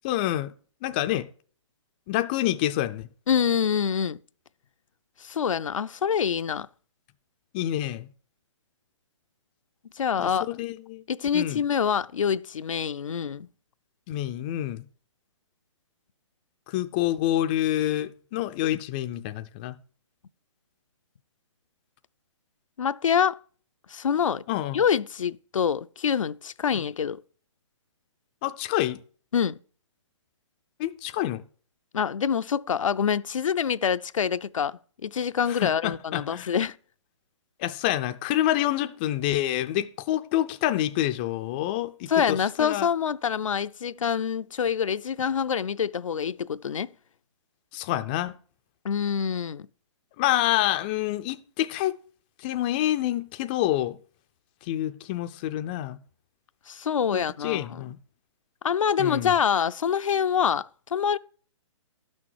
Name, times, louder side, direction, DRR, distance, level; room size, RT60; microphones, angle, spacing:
voice 1, 0.0-0.5 0.8-1.3 2.1-3.1 7.5-8.1 10.2-11.0 11.3-11.6 14.1-14.8 16.7-19.8 24.5-24.8 28.4-29.0 30.8-31.4 35.5-36.5 37.6-42.9 47.7-48.3 50.2-52.0 52.4-54.0 54.6-56.0 57.1-58.0 59.0-59.3, left 13 dB, 20° left, 0.3 m, -27 dB
voice 2, 3.3-4.2 5.2-6.7 10.0-10.5 11.1-13.5 22.8-23.4 23.9-24.4 24.7-27.2 29.3-29.6 31.9-36.7 42.1-46.9 48.8-49.7 56.7-57.8 58.6-61.2, left 7 dB, 90° left, 0.4 m, -26 dB
12.0 x 6.3 x 4.6 m
hypercardioid pair, 150°, 16 cm